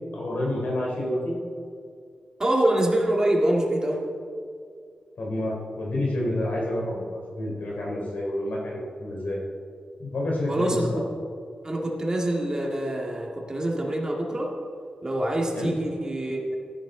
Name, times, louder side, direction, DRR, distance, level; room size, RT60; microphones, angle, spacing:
voice 1, 0.1-1.3 5.2-9.4 10.0-11.0 15.5-15.8, left 1 dB, 80° left, -3 dB, 3.3 m, -29 dB
voice 2, 2.4-4.0 10.5-11.0 11.6-14.6 15.0-16.6, right 1 dB, 25° right, -1 dB, 1.9 m, -25 dB
14.0 x 10.5 x 3.8 m, 2.2 s
wide cardioid pair, 105°, 3 cm